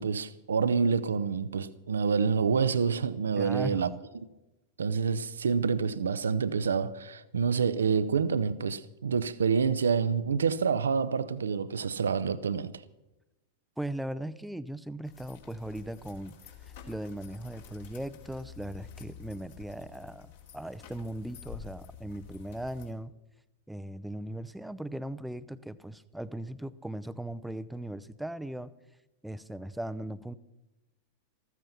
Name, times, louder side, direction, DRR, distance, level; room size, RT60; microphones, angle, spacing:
voice 1, 0.0-3.9 4.8-12.8, right 6 dB, 70° right, 0.6 m, -27 dB
voice 2, 3.4-3.9 13.8-16.4 16.9-23.1 23.7-28.7 29.2-30.3, right 1 dB, 5° right, 0.6 m, -38 dB
sound 1, 15.0-22.9, left 8 dB, 55° left, 2.5 m, -49 dB
14.5 x 14.0 x 5.6 m
figure-of-eight pair, 90°, 0 cm